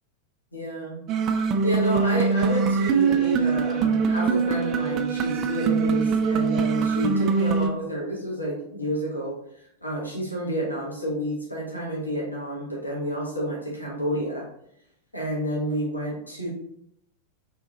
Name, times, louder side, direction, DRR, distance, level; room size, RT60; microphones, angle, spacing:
voice 1, 0.5-1.0 1.6-9.4 9.8-14.5 15.1-16.5, right 1 dB, 85° left, -4 dB, 1.0 m, -29 dB
sound 1, 1.1-7.7, right 5 dB, 35° right, 0.4 m, -23 dB
3.5 x 2.9 x 3.8 m, 0.73 s
figure-of-eight pair, 90°, 0 cm